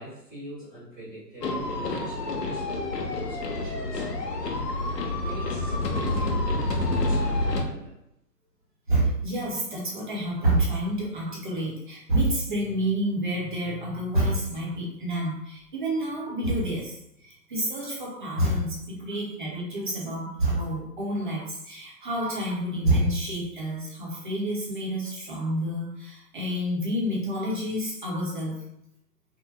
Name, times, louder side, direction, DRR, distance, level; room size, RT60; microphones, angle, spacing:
voice 1, 0.0-4.6 5.0-7.9, equal, ahead, -15 dB, 1.1 m, -42 dB
sound 1, 1.4-7.6, left 2 dB, 75° left, 0.7 m, -28 dB
voice 2, 8.9-28.6, right 1 dB, 30° right, -3 dB, 0.8 m, -28 dB
3.5 x 2.1 x 3.2 m, 0.79 s
figure-of-eight pair, 140°, 49 cm